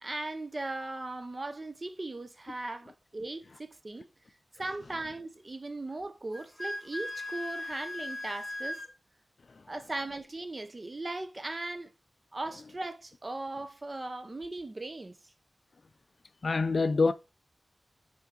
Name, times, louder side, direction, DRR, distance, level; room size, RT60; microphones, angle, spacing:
voice 1, 0.0-4.1 4.6-8.8 9.7-11.9 12.3-15.2, right 2 dB, 35° right, 0.6 m, -38 dB
Wind instrument woodwind instrument, 6.3-8.9, left 1 dB, 40° left, 2.4 m, -38 dB
voice 2, 16.4-17.1, left 3 dB, 55° left, 0.4 m, -26 dB
5.5 x 4.5 x 3.8 m
wide cardioid pair, 105°, 0 cm